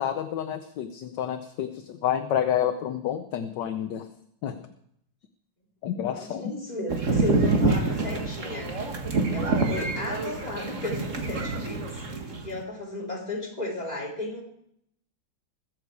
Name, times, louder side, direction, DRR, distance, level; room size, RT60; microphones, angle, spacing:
voice 1, 0.0-4.1 4.4-4.7 5.8-6.5, left 10 dB, 65° left, 8 dB, 1.3 m, -29 dB
voice 2, 6.1-8.8 9.3-12.0 12.4-14.4, left 2 dB, 20° left, -3 dB, 3.6 m, -34 dB
sound 1, 6.9-12.6, right 3 dB, 40° right, 1.7 m, -27 dB
21.5 x 8.2 x 4.7 m, 0.74 s
omnidirectional pair, 2.3 m